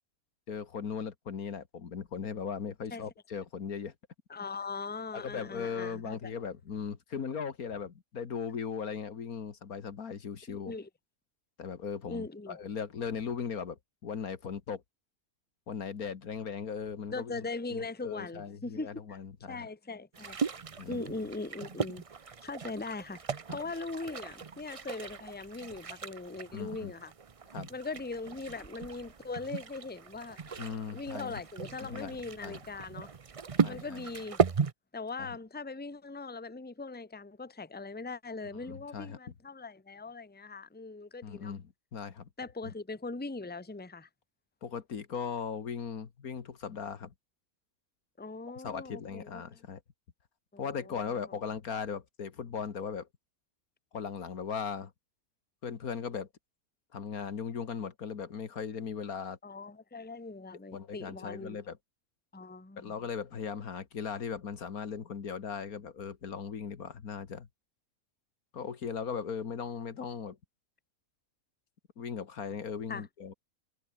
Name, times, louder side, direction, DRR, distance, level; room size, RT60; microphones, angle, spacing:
voice 1, 0.5-3.9 5.1-10.7 11.6-14.8 15.7-17.4 17.7-19.7 20.8-21.0 23.5-23.6 26.5-26.9 27.5-27.7 30.6-31.3 31.8-32.6 33.6-34.0 35.2-35.3 38.7-39.2 41.2-42.3 42.6-42.7 44.6-47.1 48.6-49.8 50.6-53.1 53.9-54.9 55.6-56.3 56.9-59.4 60.7-61.8 62.8-67.5 68.5-70.4 72.0-73.3, left 6 dB, 70° left, 2.1 m, -38 dB
voice 2, 4.3-6.2 10.5-10.9 12.1-12.6 17.1-19.2 19.5-20.4 20.9-22.0 22.4-23.2 23.5-27.1 27.7-30.4 30.9-33.1 33.7-34.4 34.9-41.5 42.4-44.1 48.2-49.4 50.5-51.2 59.4-61.6 62.3-62.9 72.9-73.0, left 3 dB, 5° left, 1.2 m, -40 dB
sound 1, 20.1-34.7, right 5 dB, 40° right, 0.5 m, -36 dB
omnidirectional pair, 1.6 m